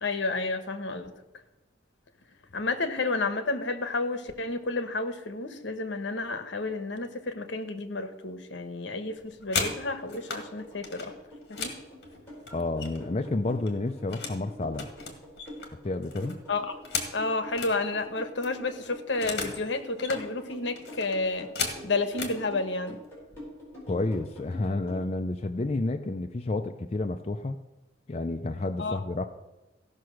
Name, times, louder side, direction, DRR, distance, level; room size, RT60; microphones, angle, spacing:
voice 1, 0.0-1.1 2.5-11.1 11.5-11.7 16.5-16.7 17.1-21.5 21.8-23.0 28.8-29.0, left 3 dB, 75° left, 9 dB, 1.0 m, -31 dB
sound 1, 9.2-10.4 10.8-13.2 13.5-14.4 14.7-17.8 18.1-18.2 18.4-19.6 19.9-20.2 20.8-22.4 23.2-23.4 23.7-24.0 24.3-24.9, left 4 dB, 55° left, 1.8 m, -36 dB
sound 2, 9.6-25.0, left 1 dB, 10° left, 4.9 m, -45 dB
voice 2, 12.5-14.9 15.8-16.4 23.9-27.6 28.1-29.3, left 2 dB, 30° left, 5 dB, 0.4 m, -30 dB
15.5 x 5.7 x 6.3 m, 1.0 s
head